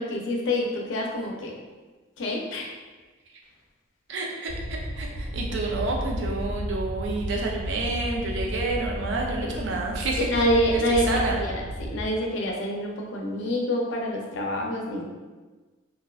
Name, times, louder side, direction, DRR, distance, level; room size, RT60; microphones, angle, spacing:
voice 1, 0.0-1.5 2.2-2.7 9.4-9.6 10.2-11.0 11.4-15.0, equal, 75° left, 0 dB, 0.5 m, -27 dB
voice 2, 4.1-4.5 5.0-10.4 10.7-11.4, right 2 dB, 75° right, -1 dB, 0.4 m, -29 dB
sound 1, 4.5-12.1, equal, 30° left, 0.7 m, -33 dB
2.5 x 2.1 x 2.3 m, 1.3 s
head